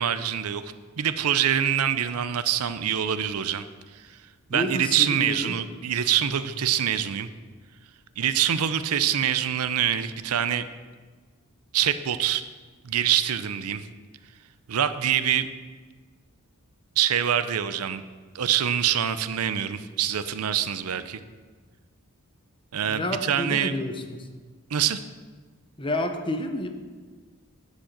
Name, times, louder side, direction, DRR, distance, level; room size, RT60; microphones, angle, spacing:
voice 1, 0.0-3.6 3.9-4.0 4.5-7.3 8.2-10.7 11.7-12.4 12.8-13.9 14.7-15.5 17.0-18.0 18.3-21.2 22.7-23.7 24.7-25.0, right 9 dB, 90° right, 13 dB, 0.6 m, -25 dB
voice 2, 4.5-5.5 22.9-24.3 25.8-26.7, left 1 dB, 25° left, 6 dB, 0.8 m, -29 dB
10.0 x 5.4 x 7.3 m, 1.4 s
head